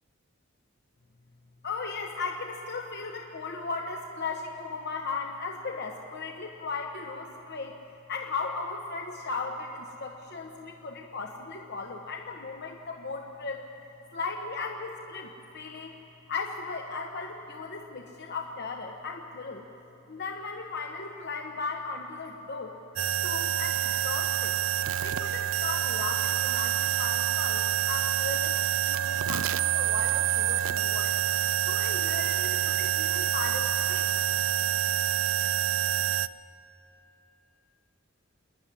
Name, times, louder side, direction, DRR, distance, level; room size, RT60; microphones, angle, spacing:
voice 1, 1.6-7.8 8.1-13.7 14.1-15.9 16.3-19.7 20.1-22.8 23.2-24.6 25.0-28.6 28.9-31.1 31.7-34.1, left 4 dB, 55° left, 2 dB, 1.1 m, -36 dB
sound 1, 23.0-36.3, right 12 dB, 85° right, 0.4 m, -27 dB
27.0 x 9.9 x 10.0 m, 2.9 s
head